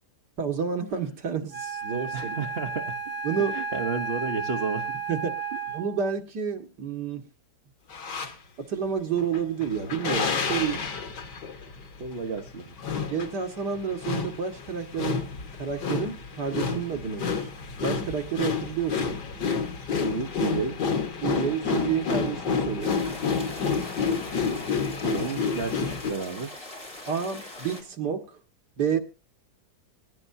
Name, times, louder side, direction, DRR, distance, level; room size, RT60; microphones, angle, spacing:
voice 1, 0.4-2.4 3.2-3.5 5.1-5.4 5.7-7.2 8.6-10.9 13.1-15.3 15.6-17.5 17.8-19.2 21.2-23.0 27.1-28.4 28.8-29.0, right 7 dB, 80° right, 2.4 m, -30 dB
Wind instrument woodwind instrument, 1.5-6.1, right 4 dB, 10° left, 0.8 m, -33 dB
voice 2, 2.1-3.0 3.5-5.0 12.0-12.7 20.0-20.8 25.0-26.5, right 4 dB, 40° right, 1.3 m, -32 dB
sound 1, 7.9-8.3 9.2-26.1, left 5 dB, 90° left, 2.2 m, -29 dB
sound 2, 22.8-27.8, left 1 dB, 30° left, 4.0 m, -42 dB
20.5 x 15.5 x 2.8 m
omnidirectional pair, 1.8 m